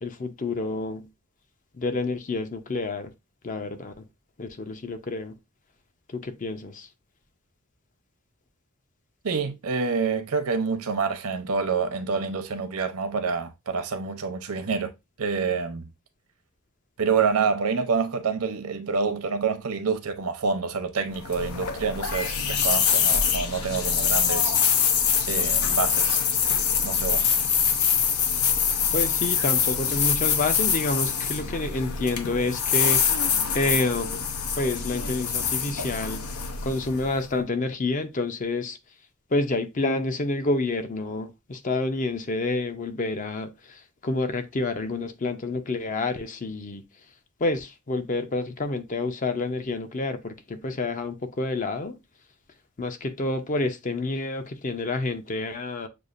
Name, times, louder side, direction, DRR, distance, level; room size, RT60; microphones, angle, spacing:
voice 1, 0.0-1.1 1.8-3.1 3.4-4.0 4.4-5.4 6.1-6.9 28.9-33.0 33.5-34.2 34.6-36.2 36.6-38.8 39.3-46.8 47.4-51.9 52.8-55.9, left 2 dB, 35° left, 0.5 m, -28 dB
voice 2, 9.2-14.9 15.2-15.9 17.0-24.5 25.3-26.2 26.8-27.3, right 5 dB, 80° right, 0.7 m, -27 dB
sound 1, 21.1-37.3, left 7 dB, 80° left, 0.7 m, -24 dB
6.7 x 2.4 x 2.4 m
head